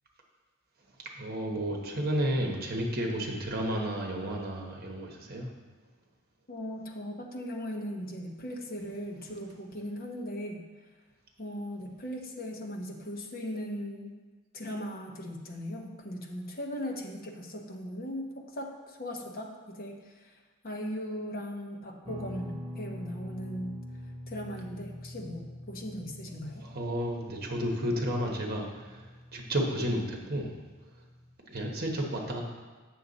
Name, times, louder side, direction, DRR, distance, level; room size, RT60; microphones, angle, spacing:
voice 1, 1.0-5.5 26.6-30.5 31.5-32.4, equal, 45° right, 0 dB, 1.2 m, -32 dB
voice 2, 6.5-10.6 11.4-14.3 14.5-20.4 20.6-23.8 24.3-26.7, equal, 45° left, 1 dB, 1.0 m, -38 dB
Guitar, 22.0-31.3, equal, 30° right, 0.8 m, -45 dB
8.3 x 6.4 x 4.1 m, 1.4 s
head